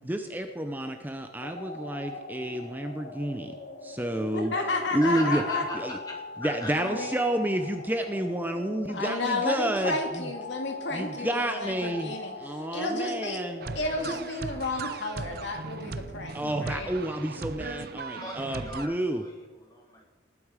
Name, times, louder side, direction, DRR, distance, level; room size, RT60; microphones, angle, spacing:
voice 1, 0.0-3.5 3.8-4.5 4.9-5.4 5.7-6.0 6.4-10.3 10.9-13.6 16.3-19.2, right 1 dB, 10° right, 6 dB, 0.7 m, -30 dB
Nuclear alarm of Tihange (Liège Belgium), 1.4-14.2, left 3 dB, 45° left, 1.4 m, -42 dB
voice 2, 4.3-5.6 6.7-7.2 8.9-13.4 13.7-16.9, left 2 dB, 70° left, 3 dB, 2.5 m, -32 dB
voice 3, 5.0-5.8 6.0-6.8 18.1-20.1, left 1 dB, 20° left, 0 dB, 2.5 m, -40 dB
sound 1, 13.6-18.9, right 3 dB, 50° right, 0.6 m, -38 dB
19.0 x 8.4 x 5.0 m, 1.2 s
head